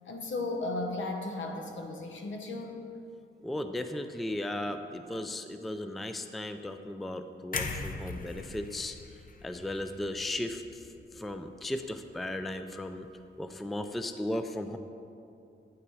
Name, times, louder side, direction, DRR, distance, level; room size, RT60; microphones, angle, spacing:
voice 1, 0.1-2.8, left 2 dB, 75° left, 3 dB, 1.0 m, -35 dB
voice 2, 3.4-9.0 9.4-10.6 11.1-13.1 13.4-14.8, left 1 dB, ahead, 8 dB, 0.3 m, -36 dB
sound 1, 7.5-11.6 11.9-12.1, left 4 dB, 45° left, 0.6 m, -40 dB
9.2 x 5.9 x 4.8 m, 2.5 s
wide cardioid pair, 125°, 20 cm